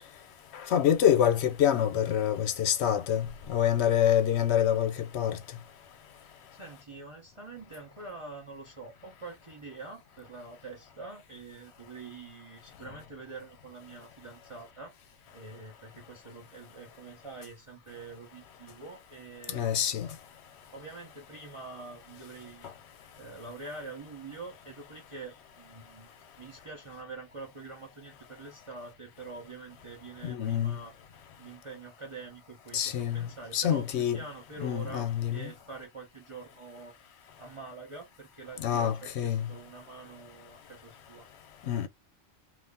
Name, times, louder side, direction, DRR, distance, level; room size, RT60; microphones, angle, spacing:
voice 1, 0.5-5.4 19.5-20.1 30.2-30.8 32.7-33.3 33.5-34.2 34.6-35.5 38.6-39.5 41.7-41.9, left 10 dB, 65° left, 0.8 m, -26 dB
voice 2, 6.2-14.9 15.3-20.1 20.7-26.1 26.4-30.9 31.4-36.9 37.4-41.3, right 3 dB, 30° right, 0.8 m, -45 dB
2.7 x 2.5 x 3.5 m
omnidirectional pair, 1.3 m